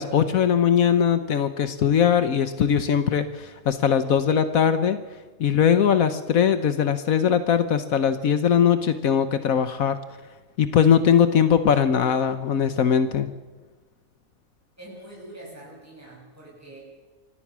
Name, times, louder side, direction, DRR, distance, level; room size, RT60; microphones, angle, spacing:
voice 1, 0.0-5.0 5.4-10.0 10.6-13.3, left 8 dB, 80° left, 11 dB, 1.4 m, -20 dB
voice 2, 14.8-16.8, right 1 dB, 10° right, -4 dB, 7.0 m, -44 dB
24.5 x 17.5 x 6.1 m, 1.2 s
omnidirectional pair, 1.5 m